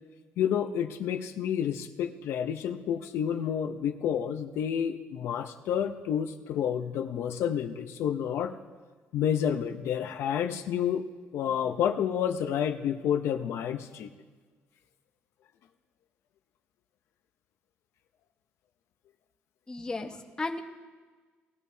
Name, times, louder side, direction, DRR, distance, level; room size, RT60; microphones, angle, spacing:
voice 1, 0.4-8.5 9.1-14.1, left 9 dB, 75° left, 5 dB, 0.6 m, -29 dB
voice 2, 19.7-20.6, left 3 dB, 15° left, 4 dB, 1.0 m, -34 dB
19.0 x 13.5 x 2.8 m, 1.4 s
cardioid pair, 120°, 5 cm